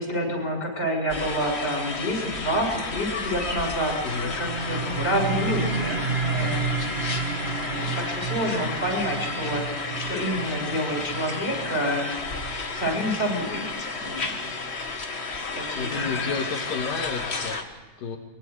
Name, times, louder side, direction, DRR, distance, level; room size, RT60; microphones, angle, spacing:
voice 1, 0.0-6.7 7.6-12.1 12.7-13.7 14.0-14.4 15.5-16.1, equal, 20° left, 0 dB, 7.6 m, -28 dB
sound 1, 1.1-17.6, left 3 dB, 45° left, 0.8 m, -32 dB
sound 2, 3.9-14.9, right 4 dB, 75° right, 0.5 m, -32 dB
voice 2, 6.3-7.0 15.8-18.2, left 5 dB, 80° left, 1 dB, 3.4 m, -32 dB
24.5 x 22.5 x 4.9 m, 1.4 s
omnidirectional pair, 3.9 m